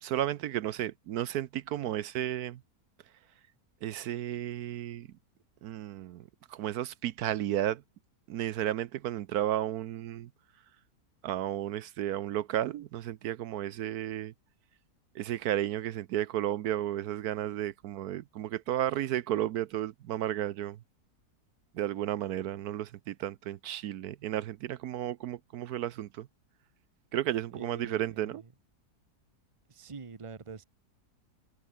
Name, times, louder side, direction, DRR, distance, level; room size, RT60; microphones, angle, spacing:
voice 1, 0.0-2.6 3.8-5.1 5.6-7.8 8.3-10.3 11.2-14.3 15.1-20.8 21.7-26.3 27.1-28.4, right 12 dB, 75° right, 1.2 m, -33 dB
voice 2, 27.6-28.5 29.7-30.6, right 5 dB, 25° right, 1.0 m, -45 dB
omnidirectional pair, 1.7 m